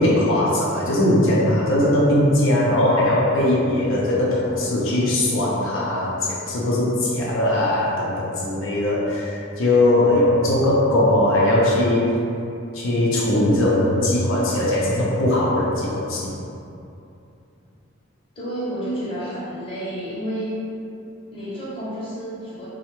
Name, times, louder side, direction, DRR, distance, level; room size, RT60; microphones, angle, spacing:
voice 1, 0.0-12.2 12.7-16.3, left 1 dB, 75° left, -5 dB, 0.5 m, -20 dB
voice 2, 18.4-20.6 21.3-22.7, equal, 25° left, -9 dB, 0.7 m, -30 dB
3.1 x 2.0 x 3.0 m, 2.7 s
head